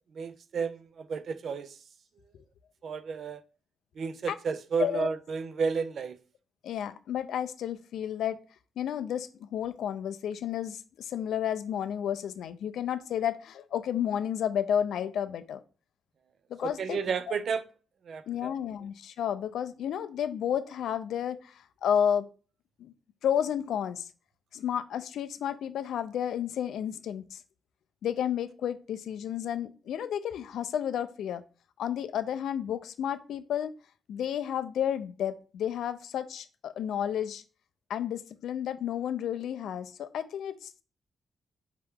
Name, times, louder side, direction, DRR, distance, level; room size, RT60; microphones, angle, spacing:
voice 1, 0.1-1.8 2.8-3.4 4.0-6.2 16.6-17.6 18.1-18.5, right 5 dB, 60° right, 0.4 m, -32 dB
voice 2, 6.6-8.4 8.8-15.6 16.5-17.0 17.3-17.4 18.3-22.3 22.8-22.9 23.2-24.1 24.5-27.4 28.0-31.4 31.8-33.7 34.1-37.4 37.9-40.8, left 9 dB, 85° left, 0.4 m, -31 dB
4.4 x 2.9 x 3.5 m
cardioid pair, 95°, 0 cm